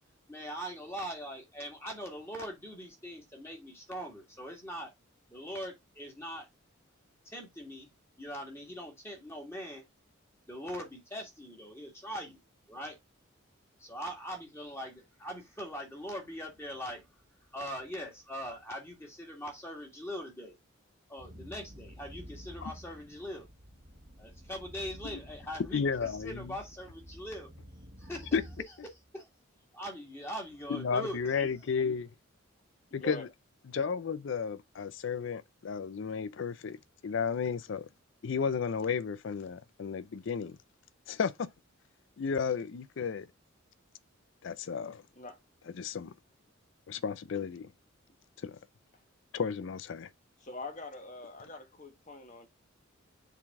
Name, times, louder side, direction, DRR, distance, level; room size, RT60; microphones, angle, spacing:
voice 1, 0.3-4.9 5.3-6.5 7.3-7.9 8.2-9.8 10.5-12.4 12.7-13.0 13.8-17.0 17.5-20.6 21.1-23.5 24.2-27.5 28.0-28.4 29.1-29.3 29.7-31.2, equal, 10° left, 1.8 m, -41 dB
sound 1, 21.2-28.6, equal, 45° right, 1.3 m, -50 dB
voice 2, 25.7-26.6 28.3-28.4 30.7-32.1 32.9-33.3 33.7-37.9 38.2-40.6 41.1-41.5 42.2-43.3 44.4-45.0 45.8-46.1 46.9-47.7 48.4-48.6 49.3-50.1, left 6 dB, 60° left, 0.4 m, -33 dB
voice 3, 31.3-32.0 32.9-33.3 45.2-45.4 50.4-52.5, left 2 dB, 35° left, 1.3 m, -44 dB
7.2 x 3.9 x 3.5 m
head